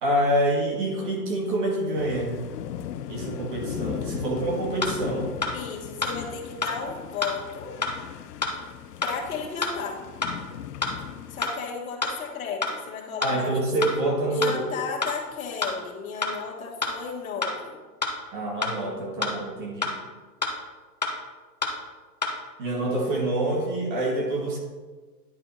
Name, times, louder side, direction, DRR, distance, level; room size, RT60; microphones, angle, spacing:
voice 1, 0.0-2.4 3.1-5.3 13.2-14.6 18.3-19.9 22.6-24.6, right 1 dB, 35° right, 0 dB, 1.5 m, -26 dB
sound 1, 1.9-11.5, left 10 dB, 85° left, 0.7 m, -37 dB
sound 2, 4.8-4.9 5.4-5.5 6.0-6.1 6.6-6.7 7.2-7.3 7.8-7.9 8.4-8.5 9.0-9.1 9.6-9.7 10.2-10.3 10.8-10.9 11.4-11.5 12.0-12.1 12.6-12.7 13.2-13.3 13.8-13.9 14.4-14.5 15.0-15.1 15.6-15.7 16.2-16.3 16.8-16.9 17.4-17.5 18.0-18.1 18.6-18.7 19.2-19.3 19.8-19.9 20.4-20.5 21.0-21.1 21.6-21.7 22.2-22.3, left 3 dB, 30° left, 0.4 m, -26 dB
voice 2, 5.5-7.7 9.0-10.0 11.3-13.5 14.3-17.8, left 5 dB, 60° left, 0 dB, 1.6 m, -34 dB
10.5 x 4.5 x 4.0 m, 1.3 s
hypercardioid pair, 175°, 47 cm